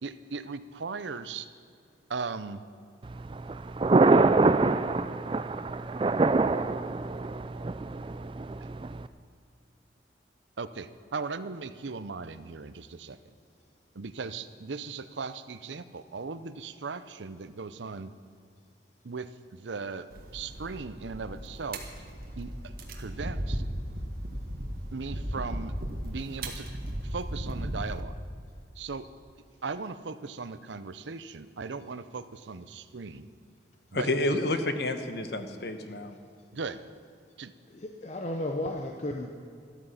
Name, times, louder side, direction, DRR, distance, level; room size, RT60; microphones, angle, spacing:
voice 1, 0.0-1.5 2.1-2.6 10.6-13.2 13.9-18.1 19.0-21.9 22.4-23.6 24.9-25.7 26.0-28.2 28.8-29.1 29.6-33.3 33.9-34.4 36.5-36.8 37.4-37.5, right 4 dB, 85° right, 13 dB, 0.7 m, -38 dB
Thunder, 3.0-9.1, right 3 dB, 30° right, 0.3 m, -25 dB
sound 1, 20.1-28.0, right 1 dB, 55° right, 1.6 m, -36 dB
voice 2, 33.9-36.2, left 1 dB, 65° left, 8 dB, 1.1 m, -29 dB
voice 3, 37.7-39.3, left 1 dB, 40° left, 3 dB, 0.7 m, -34 dB
13.5 x 13.0 x 5.7 m, 2.3 s
head